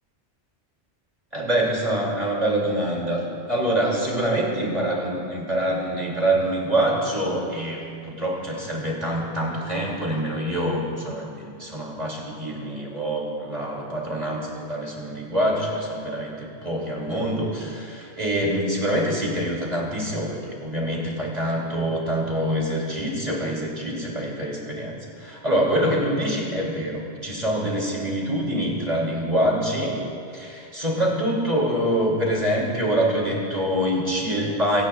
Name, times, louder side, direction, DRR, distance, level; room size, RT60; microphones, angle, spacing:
voice 1, 1.3-30.0 30.3-34.8, right 1 dB, 35° right, -3 dB, 2.8 m, -25 dB
24.5 x 17.0 x 2.4 m, 2.5 s
omnidirectional pair, 1.2 m